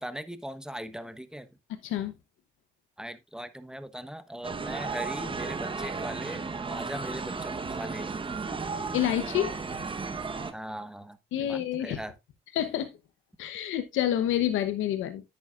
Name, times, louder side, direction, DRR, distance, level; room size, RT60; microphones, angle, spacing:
voice 1, 0.0-1.6 3.0-6.4 6.7-8.1 10.5-12.1, equal, 5° right, 1.1 m, -39 dB
voice 2, 1.8-2.1 8.9-9.5 11.3-12.0 12.5-12.9 13.4-15.2, left 11 dB, 85° left, 0.9 m, -28 dB
sound 1, 4.4-10.5, right 4 dB, 25° right, 1.1 m, -34 dB
10.0 x 8.8 x 2.4 m
cardioid pair, 90°, 20 cm